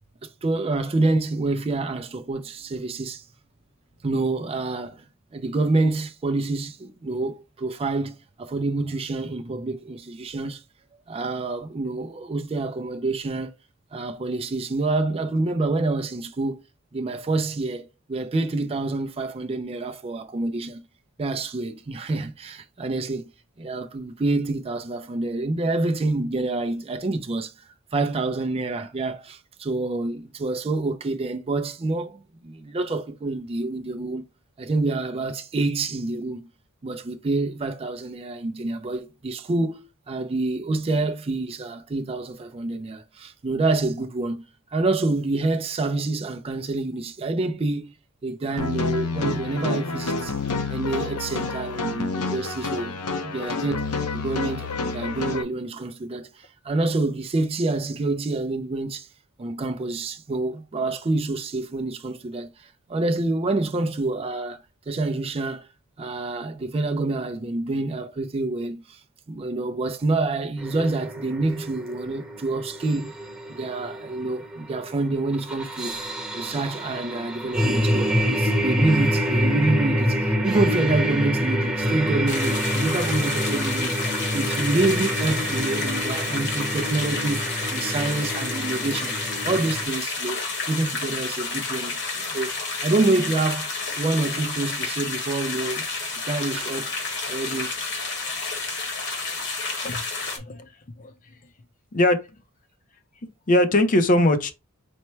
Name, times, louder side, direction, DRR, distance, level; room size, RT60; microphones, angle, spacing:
voice 1, 0.2-3.2 4.0-5.0 5.3-10.6 11.1-13.5 13.9-16.6 16.9-20.8 21.2-23.3 23.6-34.2 34.6-36.5 36.8-44.4 44.7-47.9 48.2-50.4 50.7-59.1 59.4-65.7 66.0-69.0 69.3-73.1 73.5-76.0 76.3-89.2 89.4-92.5 92.8-95.8 96.3-96.9 97.3-97.7, right 2 dB, 25° right, 0.4 m, -27 dB
sound 1, 48.6-55.4, left 3 dB, 90° left, 0.8 m, -28 dB
sound 2, 70.6-89.8, equal, 5° right, 0.8 m, -27 dB
sound 3, 82.3-100.4, left 3 dB, 55° left, 1.3 m, -30 dB
voice 2, 100.4-100.7 101.0-101.1 101.9-102.2 103.5-104.5, left 1 dB, 35° left, 0.6 m, -20 dB
4.4 x 2.1 x 4.4 m
head